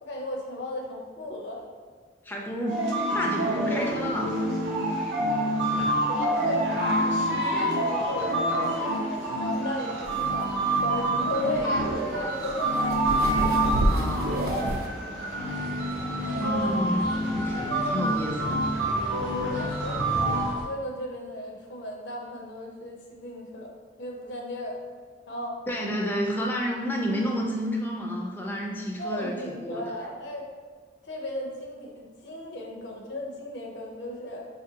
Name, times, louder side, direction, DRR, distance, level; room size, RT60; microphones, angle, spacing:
voice 1, 0.0-1.6 6.1-6.7 7.4-10.5 10.8-11.7 12.0-13.0 19.3-23.7 24.0-24.8 25.3-25.6 29.0-30.4 31.1-34.4, left 1 dB, 85° left, 0 dB, 0.6 m, -35 dB
voice 2, 2.2-4.3 5.7-6.0 13.9-14.5 16.4-18.6 20.1-20.2 25.7-29.8, equal, 10° left, -1 dB, 0.3 m, -31 dB
sound 1, 2.7-20.5, right 1 dB, 80° right, 0.8 m, -27 dB
sound 2, 10.0-14.9, right 1 dB, 55° right, 0.4 m, -30 dB
sound 3, 15.3-20.7, equal, 40° right, 0.8 m, -40 dB
4.3 x 2.5 x 2.7 m, 1.5 s
head